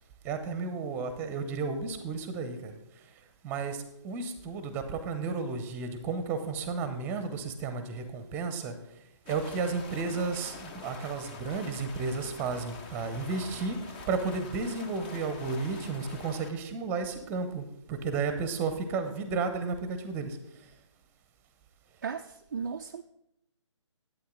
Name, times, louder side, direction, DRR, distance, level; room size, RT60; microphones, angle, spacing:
voice 1, 0.2-2.8 3.4-8.7 9.3-20.7, right 4 dB, 10° right, 9 dB, 0.8 m, -33 dB
sound 1, 9.3-16.5, left 4 dB, 20° left, 0.6 m, -45 dB
voice 2, 22.0-23.0, right 6 dB, 35° right, 5 dB, 0.3 m, -36 dB
11.5 x 8.6 x 3.8 m, 0.80 s
figure-of-eight pair, 140°, 16 cm